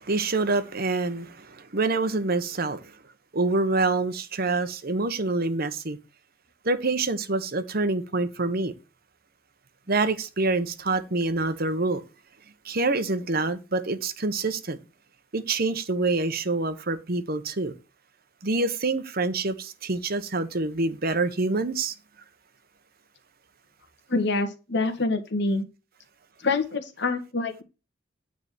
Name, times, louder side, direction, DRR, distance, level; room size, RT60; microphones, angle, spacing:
voice 1, 0.0-2.8 3.3-6.0 6.6-8.7 9.9-12.0 12.6-14.8 15.3-17.7 18.4-21.9, right 3 dB, 50° right, 1.1 m, -26 dB
voice 2, 24.1-25.7 26.4-27.6, left 3 dB, 60° left, 1.7 m, -26 dB
9.4 x 3.9 x 7.2 m
head